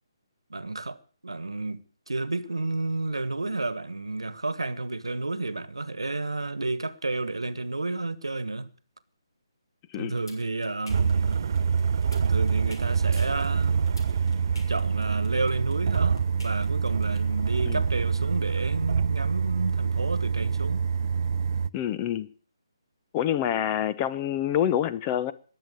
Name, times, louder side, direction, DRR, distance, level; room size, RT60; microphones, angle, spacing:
voice 1, 0.5-8.7 10.0-11.4 12.2-13.9 14.7-20.8, right 2 dB, 80° right, 1.4 m, -31 dB
sound 1, 9.9-17.2, left 2 dB, 65° left, 6.5 m, -48 dB
sound 2, 10.9-21.7, right 6 dB, 50° right, 0.6 m, -26 dB
voice 2, 21.7-22.3 23.1-25.3, left 10 dB, 20° left, 0.8 m, -27 dB
21.0 x 7.7 x 6.7 m
figure-of-eight pair, 145°, 3 cm